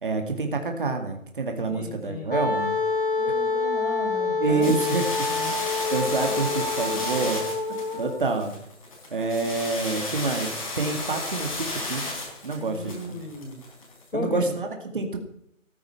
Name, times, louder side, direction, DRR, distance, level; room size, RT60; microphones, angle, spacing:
voice 1, 0.0-2.7 4.4-5.3 5.9-7.4 8.0-8.5 9.1-12.1 12.4-13.2 14.1-15.2, right 3 dB, 40° right, 4 dB, 2.2 m, -27 dB
voice 2, 1.7-2.3 3.2-4.7 5.3-5.6 12.6-13.6 14.1-14.5, left 1 dB, 70° left, 2 dB, 4.5 m, -35 dB
Wind instrument woodwind instrument, 2.3-8.3, left 3 dB, 40° left, 1.8 m, -27 dB
sound 1, 4.6-14.0, left 2 dB, 25° left, 3.9 m, -33 dB
16.5 x 9.7 x 5.7 m, 0.74 s
figure-of-eight pair, 175°, 40 cm